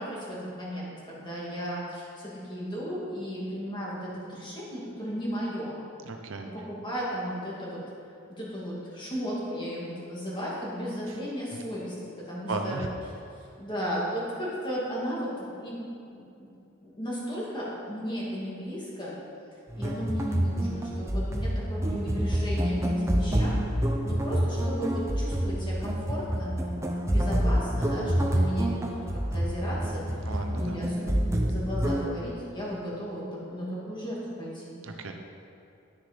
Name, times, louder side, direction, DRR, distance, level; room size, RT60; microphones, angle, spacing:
voice 1, 0.0-5.8 6.5-7.8 8.4-11.9 12.3-12.8 13.6-16.5 16.8-19.1 19.8-23.6 24.0-26.5 27.1-29.0 29.3-30.2 30.6-34.8, equal, 20° left, -6 dB, 2.1 m, -35 dB
voice 2, 6.1-6.5 11.5-11.6 12.5-12.9 30.2-30.8 34.8-35.1, right 3 dB, 65° right, 4 dB, 0.7 m, -35 dB
sound 1, 19.7-32.1, equal, 15° right, 0.7 m, -27 dB
9.6 x 6.6 x 5.1 m, 2.6 s
head